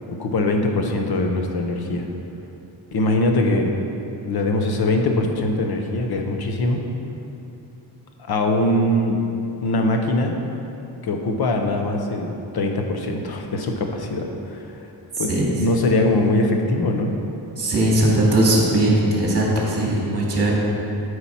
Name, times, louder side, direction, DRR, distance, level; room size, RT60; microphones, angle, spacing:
voice 1, 0.1-2.1 2.9-3.8 4.2-6.8 8.2-9.2 9.6-10.4 11.0-14.9 15.2-17.1, left 1 dB, 55° left, 3 dB, 1.0 m, -22 dB
voice 2, 17.6-20.5, right 1 dB, 30° right, -3 dB, 2.2 m, -19 dB
12.5 x 4.9 x 5.8 m, 2.9 s
wide cardioid pair, 170°, 45 cm